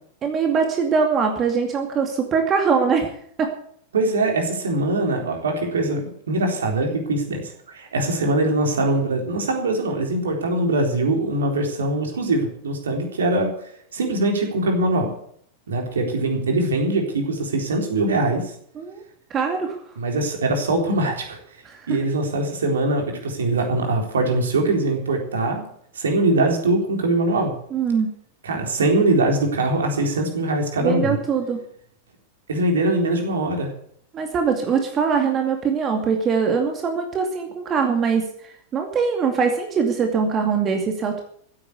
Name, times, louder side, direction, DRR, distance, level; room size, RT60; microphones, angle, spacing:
voice 1, 0.2-3.1 3.4-3.5 18.8-19.0 19.3-19.8 21.6-22.0 27.7-28.1 30.8-31.6 34.1-38.3 38.7-41.2, right 5 dB, 25° right, 4 dB, 2.3 m, -22 dB
voice 2, 3.9-6.0 6.3-13.5 13.9-15.1 15.7-18.5 20.0-21.4 21.9-25.6 25.9-27.5 28.4-31.2 32.5-33.7, right 2 dB, 65° right, 3 dB, 3.9 m, -22 dB
15.5 x 8.9 x 8.2 m, 0.63 s
figure-of-eight pair, 90°, 0 cm